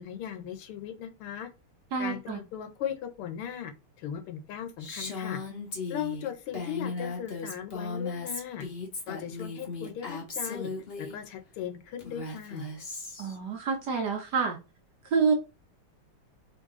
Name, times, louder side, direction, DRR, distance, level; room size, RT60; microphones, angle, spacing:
voice 1, 0.0-1.5 2.0-3.7 4.0-5.4 5.9-8.6 9.1-10.7 11.0-12.7, left 9 dB, 80° left, 9 dB, 1.7 m, -38 dB
voice 2, 1.9-2.4 13.2-14.6 15.1-15.3, right 5 dB, 60° right, 3 dB, 1.2 m, -27 dB
Female speech woman speaking, 4.8-11.2 12.0-13.4, left 3 dB, 40° left, 0.9 m, -36 dB
4.0 x 3.4 x 3.6 m, 0.28 s
omnidirectional pair, 2.4 m